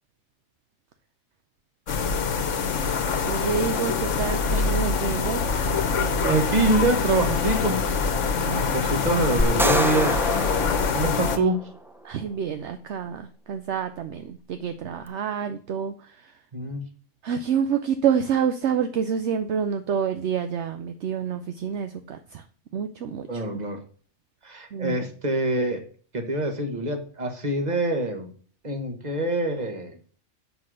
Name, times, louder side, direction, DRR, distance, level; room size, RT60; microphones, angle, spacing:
sound 1, 1.9-11.4, left 5 dB, 75° left, 1.3 m, -25 dB
voice 1, 3.3-5.4 8.4-8.6 12.0-16.4 17.2-22.4 22.7-23.6 24.7-25.0, right 7 dB, 65° right, 9 dB, 0.9 m, -28 dB
voice 2, 6.2-7.8 8.5-10.1 10.9-11.6 16.5-16.8 23.3-23.8 24.4-25.8 26.1-28.3 28.6-30.0, right 2 dB, 35° right, 5 dB, 1.6 m, -25 dB
sound 2, 9.4-11.8, equal, 5° right, 0.5 m, -26 dB
7.6 x 5.9 x 6.3 m, 0.43 s
omnidirectional pair, 1.3 m